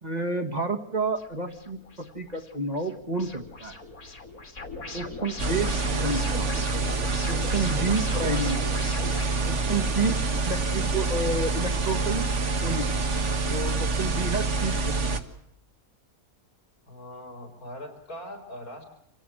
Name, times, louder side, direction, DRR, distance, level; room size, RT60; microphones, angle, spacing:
voice 1, 0.0-3.8 4.9-5.8 6.0-6.5 7.3-8.6 9.5-10.2 10.4-12.3 12.6-12.9 13.4-14.9, right 3 dB, 30° right, 6 dB, 1.8 m, -30 dB
sound 1, 1.2-12.7, left 3 dB, 70° left, 3.4 m, -41 dB
sound 2, 5.4-15.2, right 3 dB, 50° right, 1.9 m, -27 dB
voice 2, 16.9-18.8, equal, 85° left, 5 dB, 6.3 m, -41 dB
27.0 x 17.5 x 7.7 m, 0.77 s
omnidirectional pair, 1.5 m